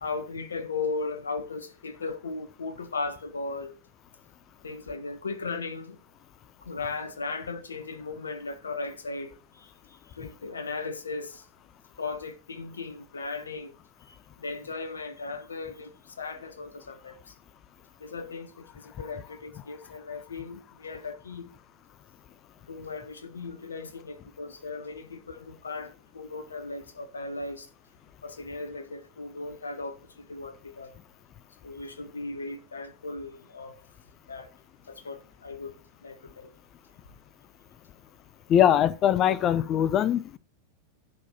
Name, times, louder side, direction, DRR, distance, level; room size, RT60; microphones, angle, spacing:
voice 1, 0.0-3.7 4.6-6.0 6.6-9.7 10.1-11.4 12.0-13.7 14.1-15.9 16.2-17.3 18.0-21.5 22.7-27.7 28.2-30.9 31.6-33.8 34.3-34.5 34.9-35.7 36.0-36.5, left 3 dB, 70° left, 1.2 m, -37 dB
voice 2, 38.5-40.4, left 10 dB, 30° left, 0.5 m, -22 dB
10.5 x 4.9 x 5.6 m
figure-of-eight pair, 90°, 0 cm